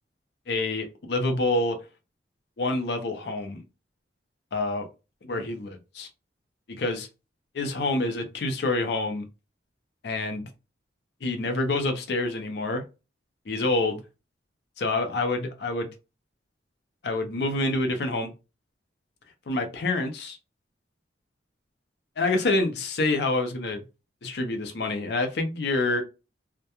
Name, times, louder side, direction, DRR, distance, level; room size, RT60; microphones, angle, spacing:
voice 1, 0.5-1.8 2.6-3.6 4.5-4.9 5.2-6.1 6.7-7.1 7.5-9.3 10.0-10.5 11.2-12.8 13.5-14.0 14.8-15.9 17.0-18.3 19.5-20.4 22.2-23.8 24.2-26.0, left 2 dB, 60° left, 0.5 m, -27 dB
2.2 x 2.1 x 2.8 m
head